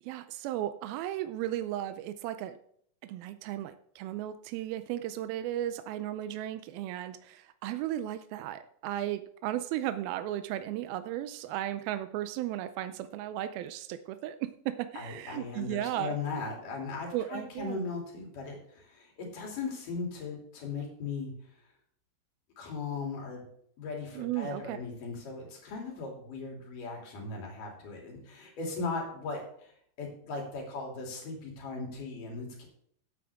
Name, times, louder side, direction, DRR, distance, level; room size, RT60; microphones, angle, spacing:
voice 1, 0.0-2.6 3.0-16.2 17.1-17.8 24.1-24.8, right 13 dB, 85° right, 11 dB, 2.5 m, -35 dB
voice 2, 14.9-21.3 22.6-23.4 23.8-29.7 30.0-32.7, left 4 dB, 65° left, 0 dB, 4.4 m, -38 dB
15.0 x 8.6 x 3.6 m, 0.65 s
omnidirectional pair, 4.2 m